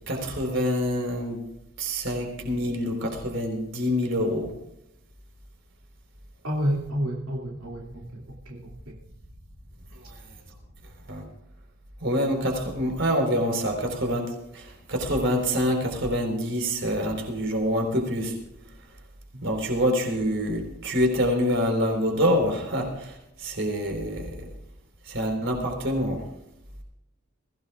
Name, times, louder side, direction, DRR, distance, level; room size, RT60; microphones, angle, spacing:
voice 1, 0.1-1.4 1.8-4.5 10.0-10.1 11.1-11.2 12.0-18.3 19.4-24.5 25.1-26.2, equal, 55° right, 2 dB, 4.2 m, -26 dB
voice 2, 6.4-8.9 19.3-19.4, equal, 90° right, -3 dB, 2.6 m, -30 dB
22.5 x 16.5 x 2.4 m, 0.83 s
head